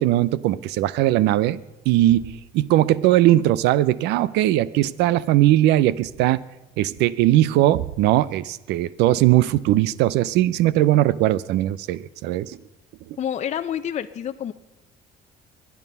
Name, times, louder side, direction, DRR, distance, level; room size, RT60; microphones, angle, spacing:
voice 1, 0.0-1.6 1.9-6.4 6.8-12.6, right 14 dB, 90° right, 20 dB, 0.6 m, -19 dB
voice 2, 13.2-14.5, left 9 dB, 40° left, 9 dB, 0.6 m, -28 dB
23.5 x 9.7 x 5.5 m, 0.95 s
cardioid pair, 110°, 17 cm